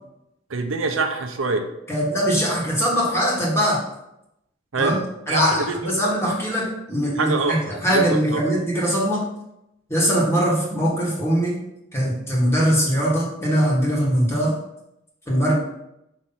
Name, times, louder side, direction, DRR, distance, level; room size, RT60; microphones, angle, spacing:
voice 1, 0.5-1.6 4.7-5.0 5.3-5.9 7.2-8.4, right 3 dB, 90° right, 6 dB, 0.7 m, -25 dB
voice 2, 1.9-3.8 4.8-5.0 5.3-9.2 9.9-11.6 11.9-14.6 15.3-15.6, equal, 15° left, -4 dB, 1.5 m, -21 dB
5.6 x 3.1 x 5.5 m, 0.84 s
head